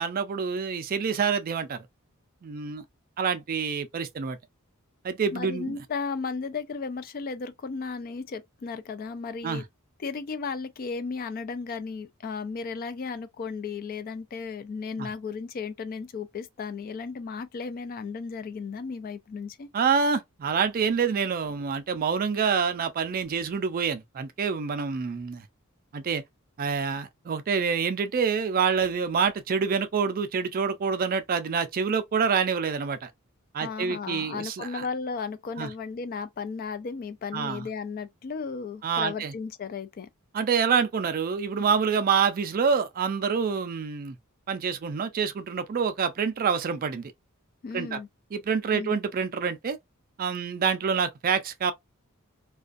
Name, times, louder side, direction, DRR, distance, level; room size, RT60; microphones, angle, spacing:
voice 1, 0.0-1.9 2.4-2.8 3.2-4.4 5.0-5.8 9.4-9.6 15.0-15.1 19.7-25.4 25.9-26.2 26.6-33.1 33.5-34.9 35.6-35.7 37.3-37.7 38.8-39.3 40.3-44.2 44.5-47.1 47.7-48.0 48.3-49.8 50.2-51.7, right 6 dB, 40° right, 0.4 m, -27 dB
voice 2, 5.3-9.6 10.0-19.7 33.6-40.1 47.6-48.1 48.7-49.0, left 5 dB, 40° left, 0.3 m, -35 dB
2.4 x 2.2 x 2.4 m
head